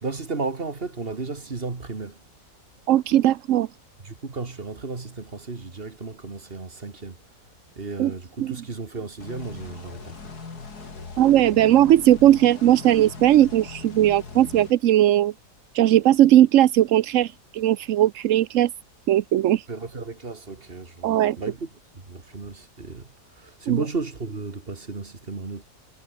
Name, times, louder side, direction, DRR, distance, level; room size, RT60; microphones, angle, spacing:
voice 1, 0.0-2.2 4.0-7.2 7.8-10.3 19.7-21.7 22.1-25.6, right 3 dB, 35° right, 2.4 m, -34 dB
voice 2, 2.9-3.7 8.0-8.1 8.4-8.6 11.2-15.3 15.7-18.7 19.1-19.6 21.0-21.4 23.7-23.8, right 12 dB, 65° right, 0.8 m, -18 dB
sound 1, 9.2-14.7, left 4 dB, 65° left, 3.6 m, -40 dB
omnidirectional pair, 1.8 m